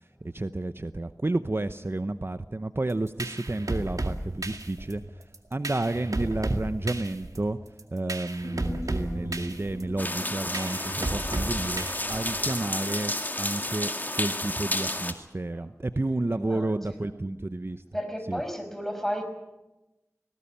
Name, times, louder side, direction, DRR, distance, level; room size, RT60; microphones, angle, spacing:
voice 1, 0.0-5.2 5.5-7.6 7.9-17.8 18.3-18.4, right 2 dB, 45° right, 11 dB, 0.7 m, -31 dB
sound 1, 2.9-12.6, right 2 dB, 85° right, 2.1 m, -34 dB
Human voice, 8.4-13.0 13.3-13.4, left 1 dB, 65° left, 6.2 m, -43 dB
sound 2, 10.0-15.1, left 1 dB, 30° left, 2.2 m, -31 dB
voice 2, 16.3-16.7 17.9-19.2, equal, 5° left, 6 dB, 5.4 m, -32 dB
20.0 x 17.5 x 8.7 m, 0.99 s
wide cardioid pair, 45°, 6 cm